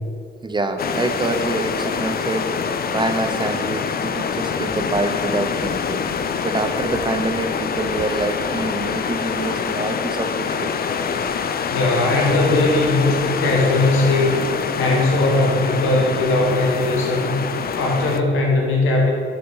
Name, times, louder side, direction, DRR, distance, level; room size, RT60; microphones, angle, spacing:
voice 1, 0.4-10.7, right 2 dB, 20° right, 7 dB, 0.7 m, -26 dB
sound 1, 0.8-18.2, left 6 dB, 45° left, 0.4 m, -25 dB
voice 2, 11.7-14.4 14.7-17.3 17.7-19.1, left 2 dB, 75° left, -1 dB, 1.4 m, -19 dB
6.6 x 5.7 x 4.0 m, 2.2 s
supercardioid pair, 50°, 21 cm